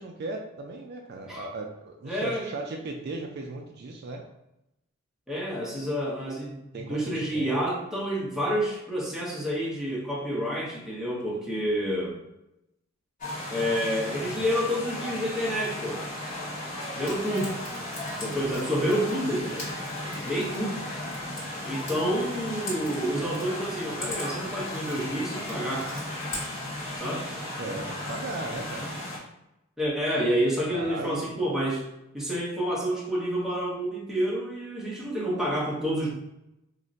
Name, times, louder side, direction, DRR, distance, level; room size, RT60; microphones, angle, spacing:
voice 1, 0.0-4.2 6.7-7.5 14.1-14.5 27.6-28.9 30.7-31.4, right 2 dB, 50° right, 2 dB, 0.3 m, -37 dB
voice 2, 2.0-2.5 5.3-12.2 13.5-16.1 16.9-17.5 18.2-19.7 20.0-20.8 21.6-25.9 27.0-27.3 29.8-31.8 32.1-36.1, equal, ahead, -5 dB, 0.7 m, -29 dB
sound 1, 13.2-29.2, left 1 dB, 40° left, 0.9 m, -35 dB
Frying (food), 17.0-27.0, left 1 dB, 75° left, 1.3 m, -43 dB
2.5 x 2.1 x 3.9 m, 0.86 s
head